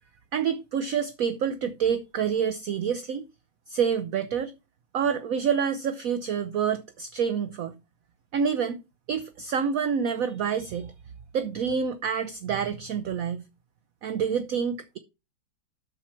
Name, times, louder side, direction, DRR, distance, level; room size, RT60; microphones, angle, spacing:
voice 1, 0.3-3.2 3.7-4.5 4.9-7.7 8.3-8.8 9.1-10.9 11.3-13.4 14.0-15.0, right 7 dB, 70° right, 0.8 m, -27 dB
12.0 x 4.4 x 4.5 m
omnidirectional pair, 2.1 m